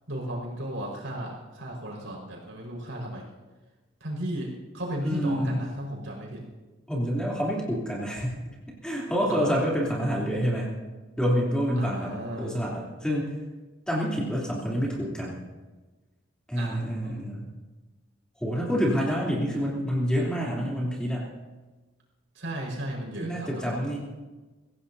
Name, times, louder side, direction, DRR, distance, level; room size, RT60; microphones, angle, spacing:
voice 1, 0.1-3.2 4.0-6.4 9.3-9.6 11.8-12.5 16.5-16.8 22.3-24.0, right 1 dB, 75° right, -2 dB, 5.0 m, -35 dB
voice 2, 5.0-5.7 6.9-8.5 8.8-10.8 11.2-13.3 13.9-15.4 16.5-17.5 18.4-21.2 23.2-24.0, equal, 5° left, -5 dB, 3.2 m, -27 dB
24.5 x 16.0 x 2.8 m, 1.2 s
head